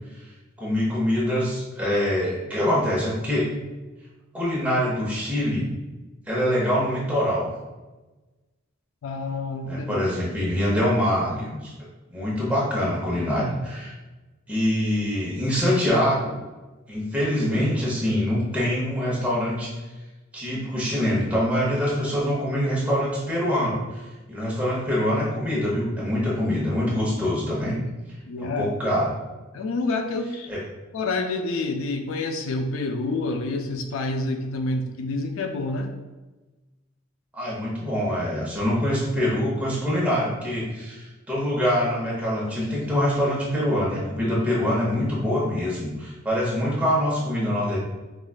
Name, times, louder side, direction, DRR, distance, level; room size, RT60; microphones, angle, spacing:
voice 1, 0.6-3.5 4.3-5.7 6.3-7.5 9.6-11.7 12.1-13.9 14.5-16.4 16.9-19.7 20.3-23.8 24.3-27.8 28.4-29.1 30.5-30.6 37.3-47.8, equal, 5° right, -6 dB, 0.9 m, -24 dB
voice 2, 9.0-10.0 28.3-28.7 29.5-30.5 30.9-35.9, left 2 dB, 75° left, 6 dB, 0.3 m, -28 dB
4.8 x 2.3 x 2.3 m, 1.2 s
head